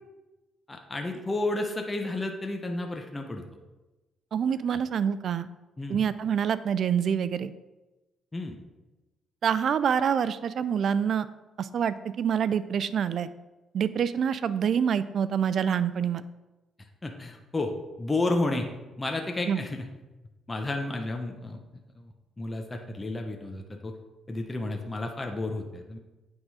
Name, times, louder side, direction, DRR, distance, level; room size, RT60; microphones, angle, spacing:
voice 1, 0.7-3.4 4.7-4.8 5.8-6.0 8.3-8.5 17.0-17.7 18.0-18.7 19.0-19.8 20.5-21.6 22.0-22.1 22.4-23.9 24.3-26.0, left 2 dB, 20° left, 3 dB, 0.8 m, -31 dB
voice 2, 4.3-5.5 5.9-7.5 9.4-11.3 11.6-13.3 13.7-16.2 19.5-19.6, right 8 dB, 60° right, 15 dB, 0.4 m, -26 dB
8.8 x 3.7 x 4.8 m, 1.1 s
cardioid pair, 90°, 0 cm